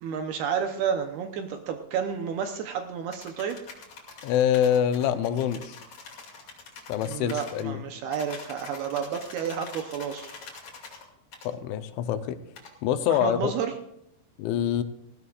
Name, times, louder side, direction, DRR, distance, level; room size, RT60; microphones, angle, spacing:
voice 1, 0.0-3.6 7.0-10.4 13.1-13.7, right 7 dB, 75° right, 5 dB, 2.4 m, -31 dB
sound 1, 3.1-7.7 8.1-11.0 11.3-11.5 12.6-12.7, left 4 dB, 40° left, 3.1 m, -45 dB
voice 2, 4.2-5.8 6.9-7.8 11.4-12.4 12.8-13.5 14.4-14.8, left 9 dB, 85° left, 10 dB, 3.2 m, -25 dB
19.0 x 16.0 x 2.5 m, 0.80 s
omnidirectional pair, 5.4 m